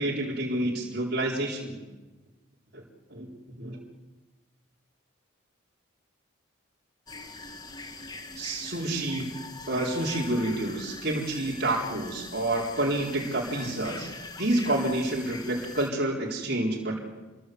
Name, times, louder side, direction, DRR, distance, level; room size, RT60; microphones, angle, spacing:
voice 1, 0.0-1.8 2.7-2.8 3.1-3.3 3.6-3.8 8.4-9.3 9.7-14.1 14.4-17.0, right 1 dB, 50° right, -3 dB, 4.2 m, -28 dB
sound 1, 7.1-15.9, left 3 dB, 20° left, 1.4 m, -42 dB
27.5 x 22.0 x 8.0 m, 1.2 s
head